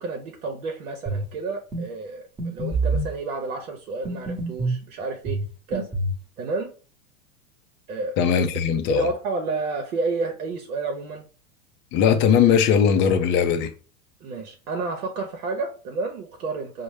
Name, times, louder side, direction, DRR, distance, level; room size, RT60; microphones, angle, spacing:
voice 1, 0.0-5.4 5.7-5.9 6.4-6.7 7.9-8.4 8.9-11.2 14.2-16.8, right 3 dB, 75° right, 0.8 m, -30 dB
sound 1, 1.1-1.3 1.7-1.9 2.4-3.1 4.1-4.8 5.3-6.2, right 2 dB, 10° right, 0.9 m, -26 dB
voice 2, 8.2-9.1 11.9-13.7, left 7 dB, 25° left, 0.4 m, -19 dB
5.1 x 2.0 x 3.1 m
hypercardioid pair, 105°, 44 cm